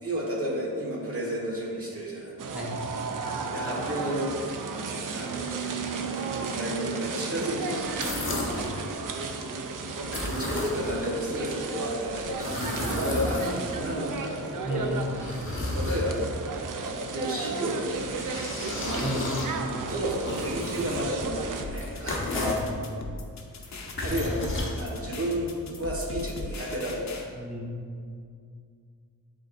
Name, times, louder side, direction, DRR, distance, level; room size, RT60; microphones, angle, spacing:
voice 1, 0.0-2.3 3.5-4.5 5.1-8.2 10.2-14.9 15.7-18.8 19.9-22.3 24.0-24.5 24.8-27.3, equal, 45° right, -4 dB, 1.4 m, -32 dB
sound 1, 2.4-21.7, right 4 dB, 70° right, 0.5 m, -34 dB
sound 2, 7.8-8.7 10.0-11.0 12.1-13.8 14.6-16.4 17.8-22.7 23.7-25.3, left 2 dB, 35° left, 0.9 m, -33 dB
voice 2, 14.6-15.2 19.0-19.4 22.3-22.7 27.3-27.7, equal, 5° right, -2 dB, 0.6 m, -32 dB
sound 3, 21.6-27.2, left 2 dB, 55° left, 0.7 m, -39 dB
9.8 x 3.8 x 2.5 m, 2.2 s
wide cardioid pair, 160°, 34 cm